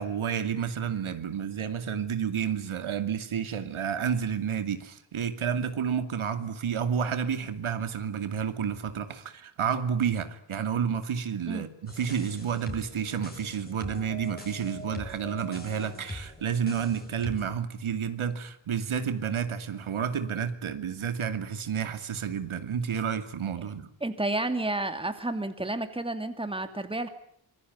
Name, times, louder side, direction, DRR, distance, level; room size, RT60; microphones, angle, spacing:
voice 1, 0.0-23.9, right 7 dB, 70° right, 2.6 m, -30 dB
sound 1, 11.9-17.5, left 1 dB, 20° left, 6.6 m, -42 dB
voice 2, 24.0-27.1, right 2 dB, 10° right, 2.6 m, -31 dB
25.5 x 22.0 x 9.5 m
wide cardioid pair, 125°, 50 cm